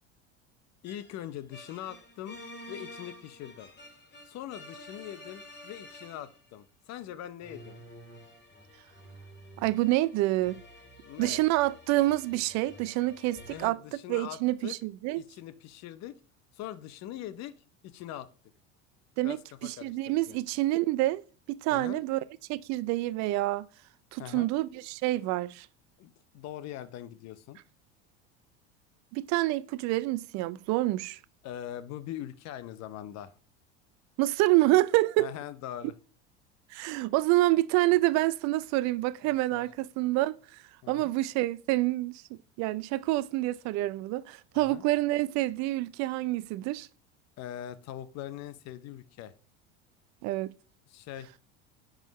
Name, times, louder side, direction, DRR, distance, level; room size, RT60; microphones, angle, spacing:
voice 1, 0.8-2.4 2.7-3.7 4.3-7.8 11.0-11.5 13.5-14.8 15.1-16.2 16.5-17.6 17.8-18.3 19.2-20.4 21.7-22.0 24.2-24.5 26.0-27.6 31.4-33.3 35.2-35.9 39.3-39.7 40.8-41.1 44.5-44.8 47.4-49.3 50.9-51.3, left 11 dB, 50° left, 0.7 m, -42 dB
sound 1, 0.8-6.5 7.4-13.7, left 1 dB, 30° left, 1.8 m, -50 dB
voice 2, 9.6-10.6 11.2-15.2 19.2-21.2 21.5-22.2 22.5-23.7 24.1-25.7 29.1-31.2 34.2-35.3 36.7-40.4 40.9-42.2 42.6-46.9 50.2-50.5, right 17 dB, 55° right, 0.4 m, -27 dB
10.0 x 3.8 x 3.2 m
hypercardioid pair, 85°, 33 cm